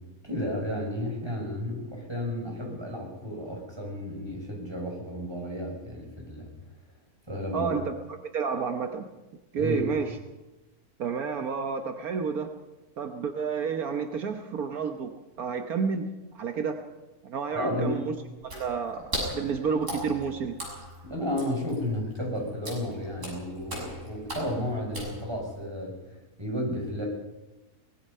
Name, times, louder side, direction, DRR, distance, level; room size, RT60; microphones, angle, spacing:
voice 1, 0.2-6.5 7.3-7.7 9.6-9.8 17.5-18.0 21.0-26.0 26.4-27.1, left 1 dB, 15° right, -1 dB, 6.5 m, -32 dB
voice 2, 7.5-7.9 8.3-9.1 9.5-10.2 11.0-12.5 13.0-16.1 16.3-16.8 17.2-18.1 18.4-20.5, right 6 dB, 70° right, 5 dB, 1.6 m, -30 dB
Water / Splash splatter, 18.4-25.6, equal, 55° right, 7.2 m, -38 dB
23.5 x 20.0 x 5.6 m, 1.1 s
omnidirectional pair, 1.6 m